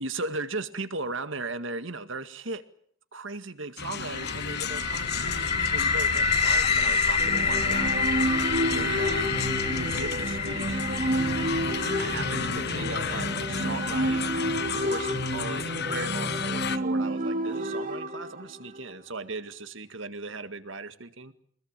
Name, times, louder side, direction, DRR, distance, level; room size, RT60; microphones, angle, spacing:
voice 1, 0.0-2.6 3.1-8.4 8.7-11.3 12.0-14.3 14.7-21.3, right 3 dB, 70° right, 10 dB, 2.0 m, -37 dB
sound 1, 3.8-16.8, left 6 dB, 55° left, 1.1 m, -33 dB
sound 2, 4.1-16.0, left 4 dB, 30° left, 1.6 m, -29 dB
sound 3, 7.2-18.9, right 1 dB, 45° right, 2.8 m, -30 dB
24.5 x 21.5 x 9.1 m, 0.63 s
head